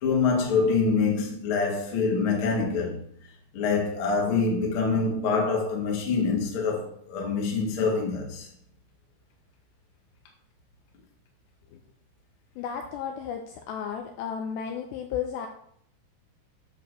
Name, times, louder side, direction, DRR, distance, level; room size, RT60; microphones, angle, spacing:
voice 1, 0.0-3.0 3.5-8.5, left 4 dB, 55° left, 1.5 m, -25 dB
voice 2, 12.6-15.5, left 7 dB, 90° left, 2.5 m, -33 dB
10.0 x 4.9 x 6.4 m
omnidirectional pair, 5.8 m